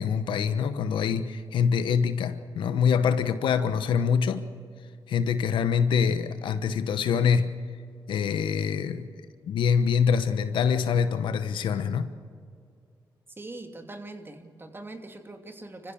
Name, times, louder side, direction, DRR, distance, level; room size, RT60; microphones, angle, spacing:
voice 1, 0.0-4.5 5.1-7.6 8.1-9.1 9.4-12.1, left 6 dB, 85° left, 1.1 m, -25 dB
voice 2, 13.4-15.9, right 2 dB, 25° right, 2.7 m, -42 dB
26.0 x 15.0 x 7.2 m
cardioid pair, 65°, 8 cm